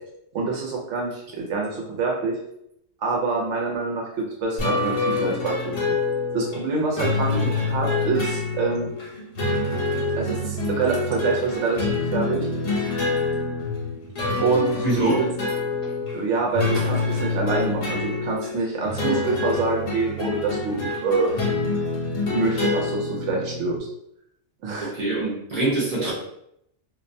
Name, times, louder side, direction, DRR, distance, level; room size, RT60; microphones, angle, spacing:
voice 1, 0.3-2.4 3.0-5.6 5.9-6.0 6.3-8.9 10.2-12.5 14.4-15.3 16.1-21.4 22.3-23.8 24.6-24.9, right 4 dB, 70° right, -1 dB, 0.8 m, -26 dB
sound 1, 4.6-23.8, left 3 dB, 70° left, 1.1 m, -26 dB
voice 2, 14.8-15.2 24.8-26.1, right 2 dB, 40° right, -7 dB, 0.5 m, -24 dB
2.5 x 2.1 x 2.6 m, 0.77 s
omnidirectional pair, 1.4 m